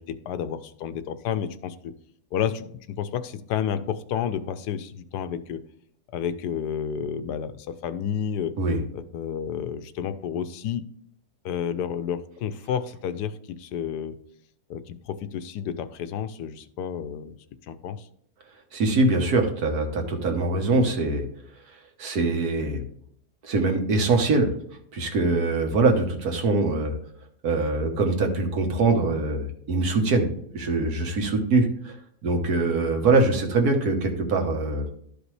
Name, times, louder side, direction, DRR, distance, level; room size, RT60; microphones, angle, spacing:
voice 1, 0.0-1.9 2.3-5.6 6.1-8.6 8.9-10.8 11.4-14.2 14.7-17.4 17.7-18.1, left 8 dB, 85° left, 11 dB, 1.2 m, -30 dB
voice 2, 18.7-21.3 22.0-22.8 23.4-24.5 24.9-26.9 27.4-30.3 30.5-32.0 32.2-34.9, right 3 dB, 70° right, 3 dB, 1.7 m, -23 dB
12.5 x 5.1 x 3.2 m, 0.66 s
omnidirectional pair, 1.7 m